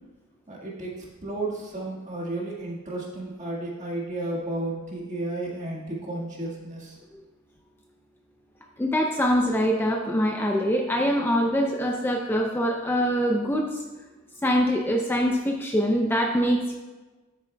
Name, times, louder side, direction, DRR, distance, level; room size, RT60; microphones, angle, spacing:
voice 1, 0.5-1.0 1.2-7.0, right 2 dB, 35° right, -3 dB, 1.6 m, -32 dB
voice 2, 8.8-13.7 14.4-16.7, equal, 10° left, 1 dB, 0.4 m, -24 dB
9.8 x 8.2 x 2.2 m, 1.2 s
head